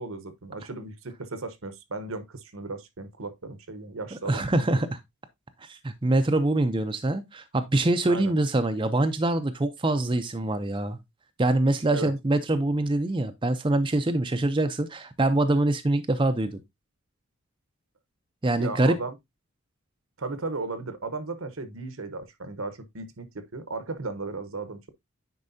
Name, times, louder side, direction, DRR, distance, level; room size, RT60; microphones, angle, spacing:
voice 1, 0.0-4.8 8.0-8.3 11.9-12.1 18.6-19.2 20.2-24.9, right 3 dB, 70° right, 1.0 m, -36 dB
voice 2, 4.1-5.0 5.6-11.0 11.4-16.6 18.4-19.0, right 2 dB, 25° right, 0.5 m, -24 dB
9.7 x 4.6 x 2.7 m
head